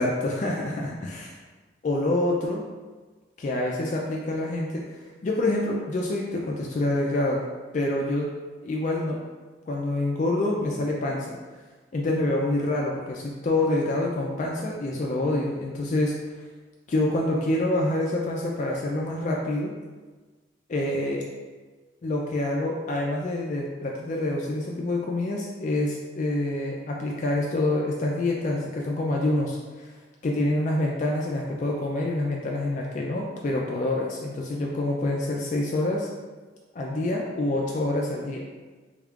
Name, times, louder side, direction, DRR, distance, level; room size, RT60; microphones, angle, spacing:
voice 1, 0.0-1.4 1.8-2.6 3.4-5.0 5.2-7.4 7.7-8.3 8.6-9.2 9.7-11.4 11.9-16.1 16.9-19.7 20.7-21.2 22.0-29.9 30.2-36.1 36.7-38.4, left 1 dB, 40° left, -2 dB, 0.3 m, -26 dB
3.5 x 3.5 x 2.3 m, 1.3 s
head